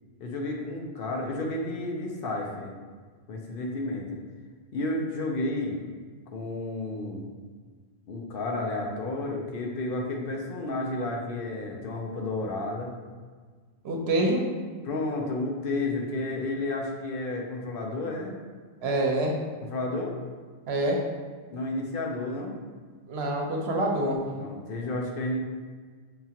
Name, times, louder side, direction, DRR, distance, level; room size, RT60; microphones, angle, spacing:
voice 1, 0.2-2.7 3.3-4.2 4.7-5.8 6.3-7.3 8.1-12.9 14.8-18.3 19.6-20.2 21.5-22.5 24.3-25.4, left 2 dB, 65° left, 0 dB, 0.8 m, -31 dB
voice 2, 13.8-14.5 18.8-19.4 20.7-21.0 23.1-24.3, right 1 dB, 80° right, 0 dB, 0.9 m, -26 dB
5.6 x 2.4 x 2.8 m, 1.5 s
omnidirectional pair, 1.1 m